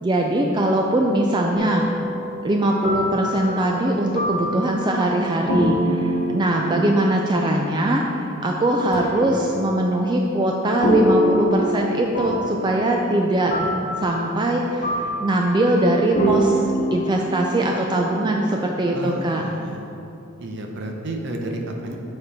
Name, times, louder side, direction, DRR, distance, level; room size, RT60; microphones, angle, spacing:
voice 1, 0.0-1.8 2.4-13.7 14.0-16.6 16.9-19.4, right 1 dB, 20° right, 0 dB, 0.4 m, -21 dB
sound 1, 1.5-8.6 10.8-18.5, equal, 40° left, 1.0 m, -26 dB
sound 2, 8.9-11.7, right 4 dB, 75° left, 1.1 m, -39 dB
voice 2, 18.9-19.9 20.4-22.0, right 1 dB, 60° right, 2 dB, 0.8 m, -31 dB
7.5 x 4.4 x 4.2 m, 2.7 s
head